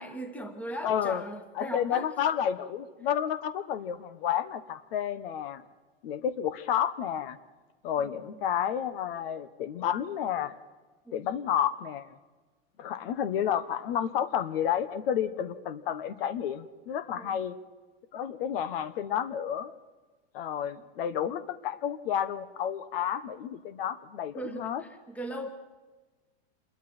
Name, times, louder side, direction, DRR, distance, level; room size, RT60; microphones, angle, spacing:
voice 1, 0.0-2.1 8.0-8.4 11.0-11.3 17.2-17.4 20.8-20.9 24.3-25.5, right 1 dB, 5° left, 7 dB, 1.5 m, -39 dB
voice 2, 0.8-1.2 1.6-5.6 6.0-7.4 7.8-10.6 11.1-12.1 12.8-17.5 18.1-19.7 20.3-24.8, left 9 dB, 65° left, 13 dB, 1.3 m, -31 dB
27.5 x 22.0 x 4.4 m, 1.3 s
supercardioid pair, 165°, 31 cm